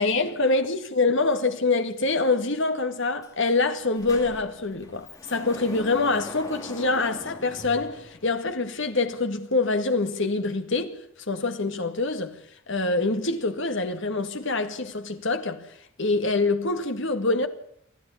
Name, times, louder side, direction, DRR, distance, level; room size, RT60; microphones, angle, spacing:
voice 1, 0.0-11.0 11.3-12.3 12.7-15.7 16.0-17.5, left 3 dB, 60° left, 2.0 m, -25 dB
Sliding door, 3.2-3.3 3.6-8.6, left 1 dB, 15° left, 2.9 m, -42 dB
28.5 x 11.0 x 8.5 m
head